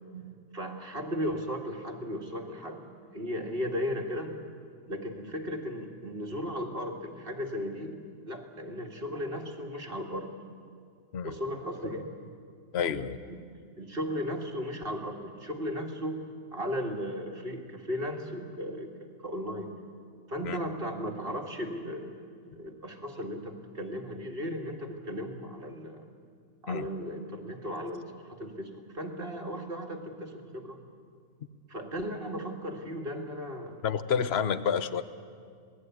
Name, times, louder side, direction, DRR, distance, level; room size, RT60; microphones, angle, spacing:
voice 1, 0.1-2.9 3.1-4.3 4.9-8.0 8.3-10.3 11.2-12.1 12.9-16.2 16.5-19.7 20.3-26.1 26.6-30.8 31.7-33.8 34.7-34.8, equal, 35° right, 3 dB, 2.3 m, -36 dB
voice 2, 12.7-13.2 20.4-20.6 26.7-26.9 33.8-35.0, left 7 dB, 45° left, 13 dB, 1.0 m, -29 dB
27.5 x 19.0 x 9.4 m, 2.2 s
omnidirectional pair, 1.7 m